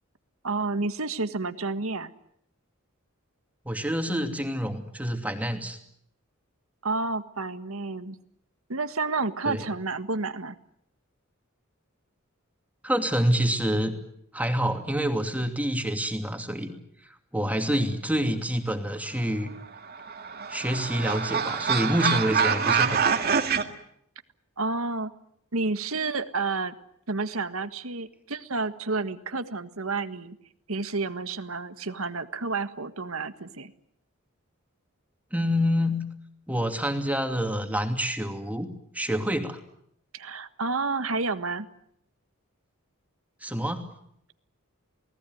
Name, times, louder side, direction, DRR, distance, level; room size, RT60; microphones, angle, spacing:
voice 1, 0.4-2.1 6.8-8.2 8.7-10.6 24.6-25.1 25.5-26.7 27.1-30.4 30.7-33.7 40.1-41.7, right 3 dB, 85° right, 10 dB, 1.7 m, -30 dB
voice 2, 3.7-5.8 9.5-9.6 12.8-14.0 14.3-16.7 17.3-19.5 20.5-23.2 35.3-36.1 36.5-38.7 38.9-39.6 43.4-43.8, equal, 5° right, 4 dB, 2.6 m, -27 dB
sound 1, 19.8-23.6, right 6 dB, 50° right, 2.0 m, -25 dB
28.5 x 19.0 x 9.4 m, 0.74 s
head